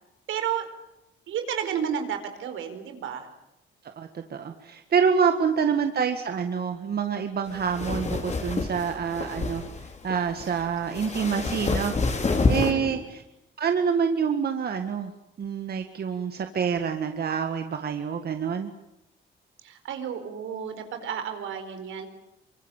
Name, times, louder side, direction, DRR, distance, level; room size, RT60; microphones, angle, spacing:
voice 1, 0.3-0.7 1.3-3.3 5.7-5.9 12.7-13.1 19.6-22.1, right 8 dB, 80° right, 7 dB, 4.6 m, -32 dB
voice 2, 3.8-9.6 10.0-13.2 13.6-15.1 15.4-18.7, right 6 dB, 50° right, 7 dB, 1.9 m, -27 dB
sound 1, 7.5-12.7, left 3 dB, 35° left, 4.0 m, -28 dB
24.0 x 23.5 x 9.0 m, 0.86 s
cardioid pair, 90°, 20 cm